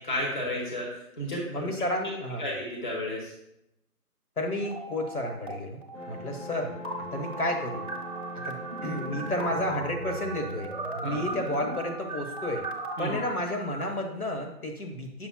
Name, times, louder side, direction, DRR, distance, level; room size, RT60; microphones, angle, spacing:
voice 1, 0.0-1.7 2.4-3.3 11.0-11.2 13.0-13.1, left 1 dB, 30° left, -3 dB, 1.0 m, -32 dB
voice 2, 1.5-2.5 4.4-5.8 6.1-7.9 8.3-10.7 11.0-12.7 13.0-15.3, left 1 dB, 65° left, 2 dB, 1.4 m, -32 dB
sound 1, 4.6-5.5 5.8-13.8, right 2 dB, 35° right, 0.7 m, -37 dB
sound 2, 5.9-12.9, equal, 50° left, 1.3 m, -44 dB
7.0 x 6.1 x 2.3 m, 0.81 s
figure-of-eight pair, 160°, 47 cm